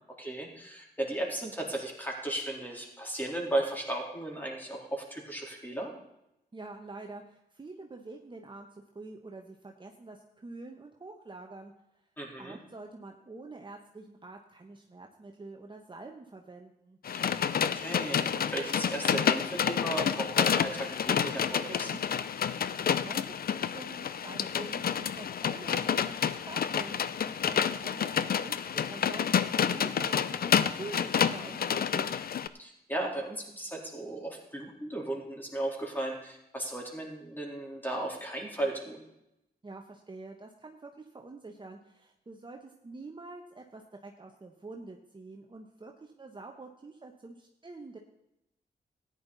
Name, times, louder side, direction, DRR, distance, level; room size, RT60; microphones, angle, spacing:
voice 1, 0.2-5.9 12.2-12.6 17.1-17.2 17.5-22.0 31.2-31.6 32.6-39.0, right 1 dB, 10° left, -1 dB, 3.7 m, -35 dB
voice 2, 6.5-11.7 12.4-17.0 22.9-23.3 23.5-32.1 39.6-48.0, right 3 dB, 30° right, 2 dB, 1.2 m, -46 dB
sound 1, 17.0-32.5, left 8 dB, 60° left, 0.6 m, -29 dB
13.5 x 10.0 x 4.1 m, 0.85 s
cardioid pair, 70°, 17 cm